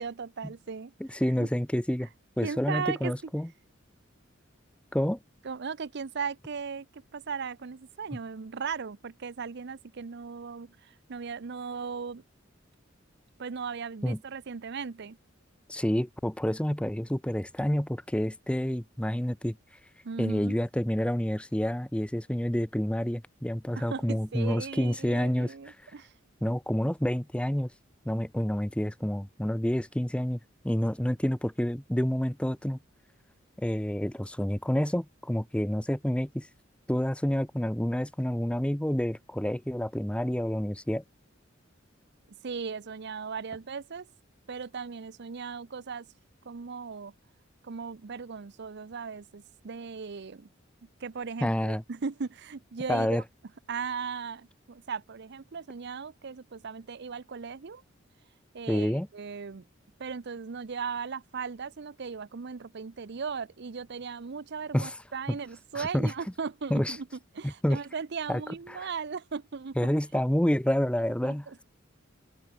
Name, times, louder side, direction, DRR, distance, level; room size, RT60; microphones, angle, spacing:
voice 1, 0.0-1.5 2.4-3.1 5.4-12.2 13.4-15.2 20.0-20.6 23.8-26.1 42.4-44.1 44.5-46.1 46.4-47.1 47.6-50.5 51.0-53.2 53.7-57.8 58.5-59.6 60.0-67.1 67.3-69.8 70.1-70.2 71.2-71.6, right 5 dB, 60° right, 0.6 m, -37 dB
voice 2, 1.0-2.1 2.4-3.5 4.9-5.2 14.0-14.2 15.7-19.6 20.2-25.7 26.4-27.7 28.0-30.4 30.6-32.8 33.6-36.5 36.9-41.0 51.4-51.8 52.9-53.2 58.7-59.1 64.7-64.9 65.7-66.1 66.7-66.9 67.4-67.8 68.3-68.4 68.7-68.8 69.8-71.5, equal, 5° left, 0.8 m, -28 dB
head